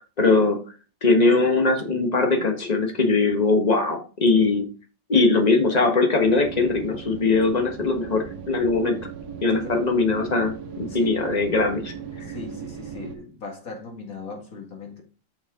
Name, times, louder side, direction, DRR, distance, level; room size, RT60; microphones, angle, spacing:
voice 1, 0.2-0.6 1.0-4.7 5.1-9.0 9.4-11.9, left 3 dB, 25° left, 1.2 m, -21 dB
sound 1, 6.2-13.2, right 7 dB, 60° right, 1.5 m, -38 dB
voice 2, 9.5-9.8 10.9-11.2 12.2-15.0, left 3 dB, 45° left, 2.4 m, -38 dB
6.5 x 6.2 x 3.7 m
omnidirectional pair, 2.1 m